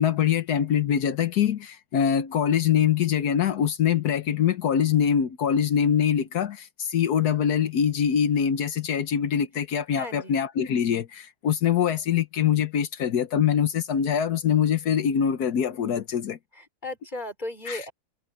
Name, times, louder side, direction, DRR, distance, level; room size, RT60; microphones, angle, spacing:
voice 1, 0.0-16.4 17.7-17.8, left 8 dB, 80° left, 1.5 m, -24 dB
voice 2, 9.9-10.4 16.5-17.9, left 2 dB, 30° left, 5.0 m, -36 dB
omnidirectional pair, 1.6 m